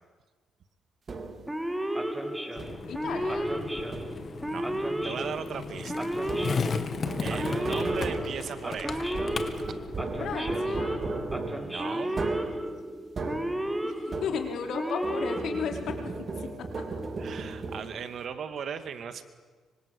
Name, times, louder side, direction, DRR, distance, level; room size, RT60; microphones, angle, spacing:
sound 1, 1.1-1.6 2.6-3.1 3.9-4.5 6.2-14.7 15.0-18.2, right 3 dB, 40° right, 4.0 m, -37 dB
Male speech man speaking / Siren, 1.5-16.2, right 1 dB, 5° right, 2.8 m, -33 dB
Skateboard, 2.6-10.6, left 5 dB, 45° left, 2.1 m, -36 dB
voice 1, 2.9-3.5 10.2-11.1 13.8-16.0 16.6-16.8, left 6 dB, 70° left, 3 dB, 4.7 m, -34 dB
voice 2, 4.5-6.3 6.6-6.7 7.2-9.1 9.6-9.8 11.6-12.2 16.0-16.1 17.2-19.2, right 7 dB, 60° right, 9 dB, 2.3 m, -38 dB
25.5 x 25.0 x 8.6 m, 1.4 s
cardioid pair, 90°, 0 cm